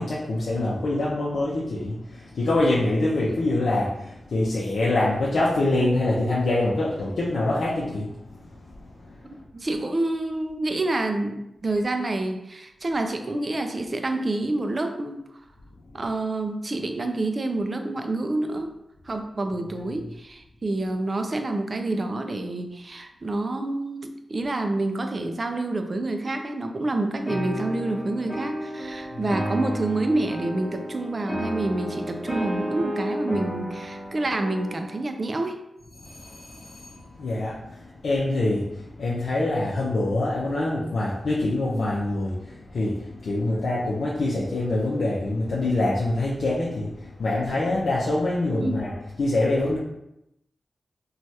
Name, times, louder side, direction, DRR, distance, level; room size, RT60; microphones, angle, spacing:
voice 1, 0.0-8.1 8.4-8.5 9.0-9.3 29.1-29.2 36.0-48.9 49.2-49.8, left 2 dB, 80° left, -7 dB, 0.5 m, -25 dB
voice 2, 9.3-15.2 15.9-18.7 19.1-35.6 48.6-48.9, right 2 dB, 40° right, 5 dB, 0.3 m, -28 dB
sound 1, 27.3-35.1, equal, 10° left, 1.0 m, -32 dB
3.2 x 2.3 x 2.7 m, 0.85 s
wide cardioid pair, 85°, 0 cm